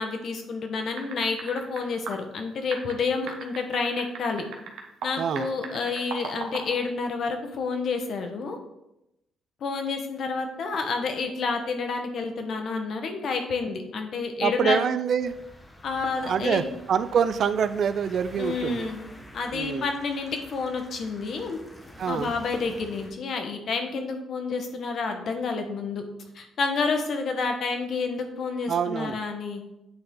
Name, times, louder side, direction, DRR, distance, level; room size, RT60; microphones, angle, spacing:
voice 1, 0.0-4.5 5.0-8.6 9.6-14.8 15.8-16.8 18.3-19.0 19.3-21.6 22.1-26.0 26.3-29.6, left 4 dB, 60° left, 5 dB, 1.2 m, -29 dB
sound 1, 1.0-2.1 2.7-5.1 5.4-6.7, right 6 dB, 80° right, 1.1 m, -36 dB
voice 2, 5.2-5.5 14.4-15.4 16.2-18.9 19.5-19.9 22.0-22.3 28.7-29.2, right 7 dB, 60° right, 12 dB, 0.4 m, -26 dB
sound 2, 15.2-23.1, equal, 15° left, 1.2 m, -48 dB
8.7 x 4.3 x 3.8 m, 0.87 s
cardioid pair, 90°, 0 cm